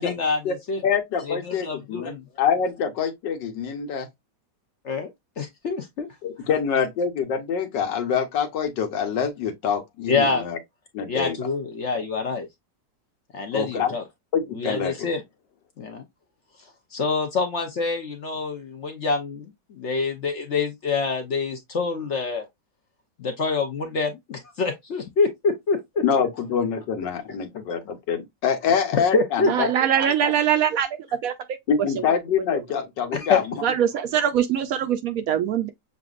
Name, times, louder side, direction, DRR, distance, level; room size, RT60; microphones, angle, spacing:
voice 1, 0.0-0.8 1.3-2.2 4.8-5.1 5.4-6.1 10.1-10.4 11.1-12.5 13.3-14.0 14.5-15.2 15.8-16.0 16.9-22.5 23.2-26.0 28.7-29.5 33.1-33.4, left 4 dB, 60° left, 0.8 m, -26 dB
voice 2, 0.8-4.1 6.2-10.6 10.9-11.4 11.9-12.0 13.5-13.9 14.3-15.1 26.0-29.7 31.7-33.5, left 7 dB, 90° left, 1.6 m, -25 dB
voice 3, 29.5-30.9 31.2-31.3 33.6-35.7, right 9 dB, 70° right, 0.8 m, -22 dB
6.8 x 2.5 x 2.3 m
omnidirectional pair, 1.9 m